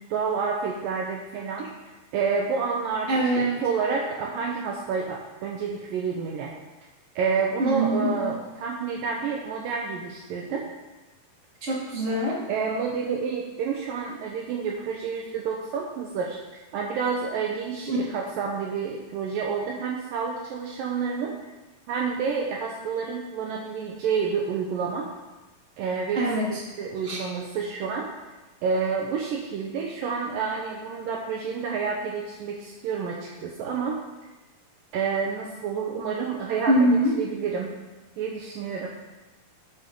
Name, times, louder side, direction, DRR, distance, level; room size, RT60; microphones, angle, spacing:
voice 1, 0.1-1.7 2.1-6.5 7.2-10.6 12.5-16.4 16.7-21.3 21.9-25.1 25.8-26.2 26.5-28.1 28.6-34.0 34.9-37.7 38.2-38.9, right 5 dB, 70° right, -1 dB, 2.4 m, -29 dB
voice 2, 3.1-3.6 7.6-8.1 11.6-12.4 17.9-18.0 26.1-26.6 27.0-27.2 36.7-37.1, right 1 dB, 20° right, -6 dB, 2.2 m, -23 dB
16.0 x 6.1 x 3.8 m, 1.1 s
omnidirectional pair, 4.5 m